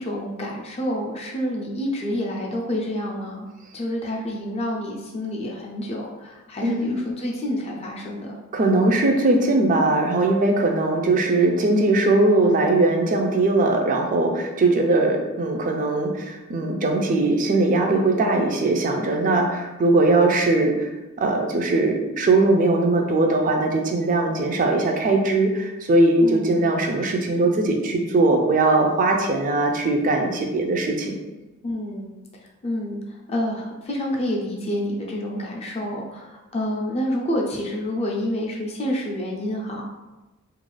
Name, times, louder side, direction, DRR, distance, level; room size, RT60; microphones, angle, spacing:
voice 1, 0.0-3.5 3.7-8.4 26.2-26.6 31.6-32.1 32.6-33.0 33.3-39.8, left 1 dB, 30° left, -1 dB, 0.4 m, -28 dB
voice 2, 6.6-7.0 8.5-20.9 21.2-31.1, right 2 dB, 35° right, 2 dB, 0.4 m, -20 dB
2.4 x 2.3 x 3.1 m, 1.1 s
head